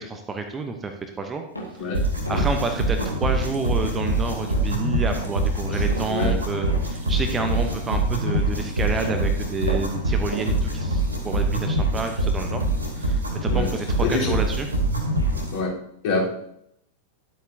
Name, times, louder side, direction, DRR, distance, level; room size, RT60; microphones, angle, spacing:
voice 1, 0.0-1.4 1.8-1.9 2.3-12.6 13.0-14.7, right 4 dB, 20° right, 5 dB, 0.9 m, -29 dB
sound 1, 1.6-1.8 2.3-2.6 3.0-3.2 3.7-4.0 4.4-4.8 5.2-5.5 5.9-6.2 6.7-7.0 7.5-7.8 8.3-8.5 9.0-9.3 9.7-10.0 10.3-10.6, right 2 dB, 80° left, 1.9 m, -34 dB
sound 2, 1.9-15.6, right 1 dB, 75° right, 2.6 m, -24 dB
voice 2, 6.1-6.4 13.5-13.7 14.0-14.3 15.5-15.7 16.0-16.3, left 3 dB, 50° left, -5 dB, 3.8 m, -25 dB
11.5 x 8.2 x 2.8 m, 0.75 s
figure-of-eight pair, 90°, 0 cm